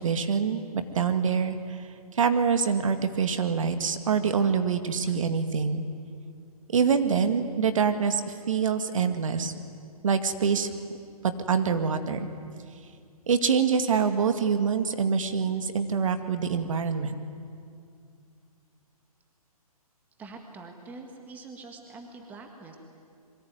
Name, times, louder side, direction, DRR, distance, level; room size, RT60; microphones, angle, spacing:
voice 1, 0.0-1.8 2.1-5.9 6.7-9.5 10.0-10.8 11.2-12.3 13.3-17.2, right 6 dB, 60° right, 9 dB, 2.1 m, -25 dB
voice 2, 20.2-22.8, right 3 dB, 10° right, 4 dB, 1.7 m, -44 dB
26.0 x 23.0 x 9.6 m, 2.4 s
hypercardioid pair, 165°, 19 cm